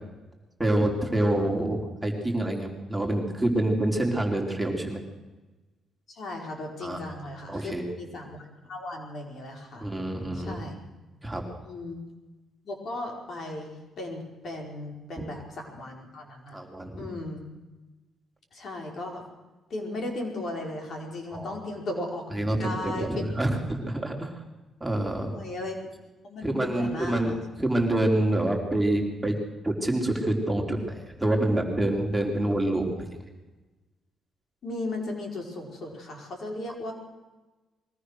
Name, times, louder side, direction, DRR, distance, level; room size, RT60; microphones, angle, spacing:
voice 1, 0.6-5.0 6.8-7.0 7.5-7.8 9.8-10.6 11.2-11.4 16.5-17.1 21.3-21.5 22.3-24.3 24.8-25.3 26.4-29.4 29.6-30.9 31.2-33.1, right 1 dB, 5° right, 0 dB, 3.9 m, -27 dB
voice 2, 6.1-9.9 10.3-10.8 11.6-12.0 12.6-16.6 17.0-17.5 18.5-19.2 19.7-23.4 25.3-25.9 26.2-27.4 34.6-36.9, left 2 dB, 55° left, 2 dB, 4.7 m, -36 dB
22.5 x 18.0 x 6.5 m, 1.1 s
cardioid pair, 90°, 0 cm